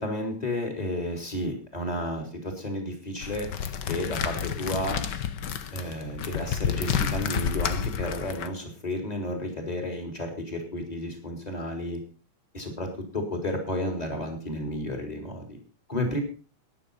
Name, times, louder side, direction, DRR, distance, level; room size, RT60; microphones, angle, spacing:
voice 1, 0.0-3.5 3.9-5.0 5.7-12.0 12.5-15.6 15.9-16.2, left 1 dB, 10° left, 4 dB, 3.4 m, -32 dB
sound 1, 3.2-8.5, left 8 dB, 85° left, 0.9 m, -30 dB
13.5 x 10.5 x 5.4 m, 0.34 s
omnidirectional pair, 3.5 m